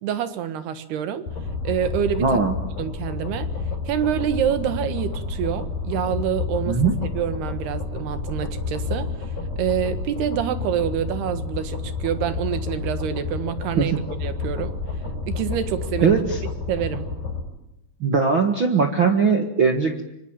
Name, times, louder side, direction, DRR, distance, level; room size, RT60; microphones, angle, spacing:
voice 1, 0.0-1.3 1.6-2.4 2.8-3.5 3.9-6.8 7.2-9.1 9.6-14.8 15.3-16.2 16.7-17.1, right 9 dB, 85° right, 10 dB, 3.6 m, -26 dB
sound 1, 1.3-17.4, left 4 dB, 60° left, 6.8 m, -30 dB
voice 2, 2.2-2.5 6.7-6.9 13.8-14.0 16.0-16.4 18.0-20.0, right 5 dB, 50° right, 5 dB, 1.6 m, -20 dB
26.0 x 25.5 x 8.9 m, 0.86 s
omnidirectional pair, 4.5 m